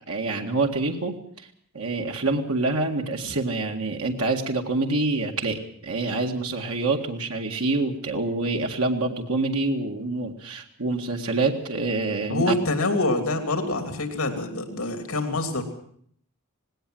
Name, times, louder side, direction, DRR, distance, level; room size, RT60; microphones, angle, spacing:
voice 1, 0.1-1.1 1.7-12.4, right 3 dB, 85° right, 2 dB, 2.0 m, -26 dB
voice 2, 12.3-15.6, left 2 dB, 75° left, 5 dB, 3.0 m, -26 dB
19.0 x 18.0 x 7.8 m, 0.64 s
head